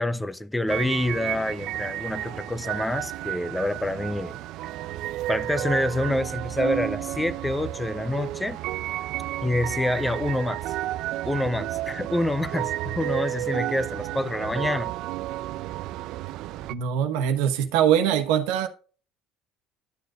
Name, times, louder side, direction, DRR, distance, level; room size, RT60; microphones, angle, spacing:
voice 1, 0.0-4.4 5.3-8.6 9.4-10.6 11.2-14.9, left 1 dB, 10° left, 0.6 m, -27 dB
sound 1, 0.7-16.7, right 15 dB, 70° right, 0.4 m, -32 dB
voice 2, 16.7-18.7, right 9 dB, 85° right, 1.1 m, -22 dB
11.5 x 6.6 x 2.4 m
supercardioid pair, 110°, 0 cm